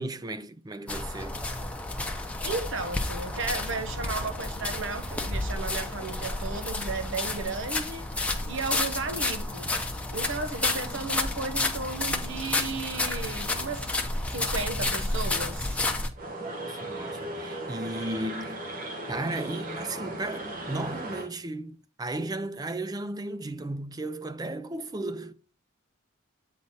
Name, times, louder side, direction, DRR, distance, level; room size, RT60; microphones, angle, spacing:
voice 1, 0.0-1.4 16.4-18.7 19.1-25.3, right 2 dB, 20° right, 0.3 m, -35 dB
sound 1, 0.9-16.1, left 2 dB, 5° left, 0.7 m, -31 dB
voice 2, 2.4-8.1 8.5-13.9 14.3-15.8, right 3 dB, 65° right, 1.0 m, -34 dB
sound 2, 16.2-21.3, right 1 dB, 40° right, 1.1 m, -37 dB
8.6 x 4.1 x 4.1 m
head